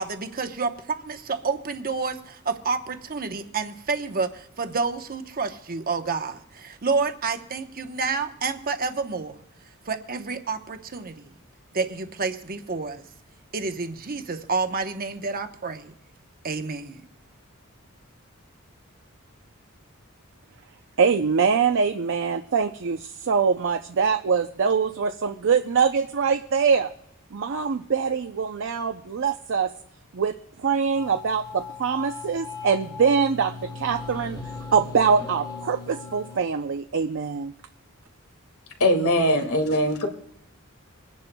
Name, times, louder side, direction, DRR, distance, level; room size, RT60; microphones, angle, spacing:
voice 1, 0.0-9.4 9.9-11.3 11.7-13.0 13.5-15.9 16.4-17.0, right 4 dB, 45° right, 7 dB, 0.9 m, -29 dB
voice 2, 21.0-26.9 27.3-29.7 30.1-34.4 34.7-37.5, right 6 dB, 60° right, 6 dB, 0.5 m, -23 dB
sound 1, 30.9-36.4, left 4 dB, 20° left, 1.2 m, -38 dB
voice 3, 38.8-40.1, left 1 dB, 80° left, 3 dB, 2.1 m, -21 dB
25.0 x 10.5 x 2.3 m, 0.76 s
head